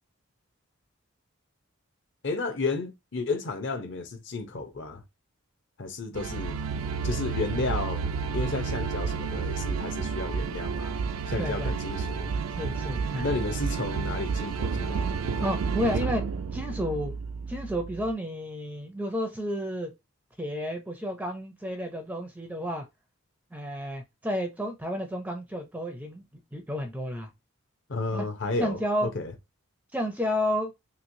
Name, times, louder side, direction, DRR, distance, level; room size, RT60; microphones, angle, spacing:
voice 1, 2.2-5.0 5.8-6.6 7.0-8.1 8.3-10.9 11.3-12.3 13.2-15.3 15.8-15.9 27.9-29.3, left 3 dB, 55° left, 0.7 m, -32 dB
sound 1, 6.1-18.1, right 5 dB, 80° right, 0.4 m, -31 dB
voice 2, 11.4-11.7 12.6-13.3 15.4-16.2 16.5-17.1 17.5-19.9 20.4-22.8 23.5-26.2 26.5-27.3 28.1-28.3 28.6-29.1 29.9-30.7, equal, 5° right, 0.4 m, -31 dB
3.0 x 2.9 x 2.6 m
head